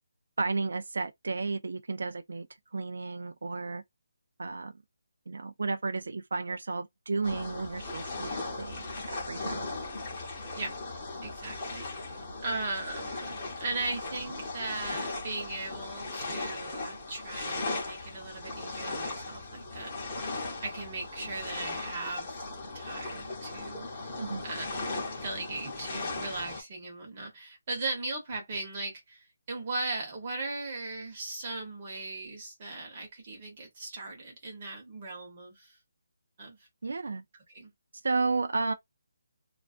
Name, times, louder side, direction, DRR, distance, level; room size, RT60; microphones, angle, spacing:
voice 1, 0.4-2.5 2.7-3.8 4.4-4.8 5.3-9.7 24.2-24.4 36.8-37.2 38.0-38.7, right 3 dB, 65° right, 0.3 m, -33 dB
sound 1, 7.2-26.6, left 3 dB, 15° left, 0.8 m, -38 dB
voice 2, 11.2-19.9 20.6-22.5 22.7-24.1 24.4-35.8 36.4-36.6 37.5-37.7, right 3 dB, 25° right, 0.9 m, -38 dB
2.3 x 2.2 x 2.4 m
hypercardioid pair, 175°, 0 cm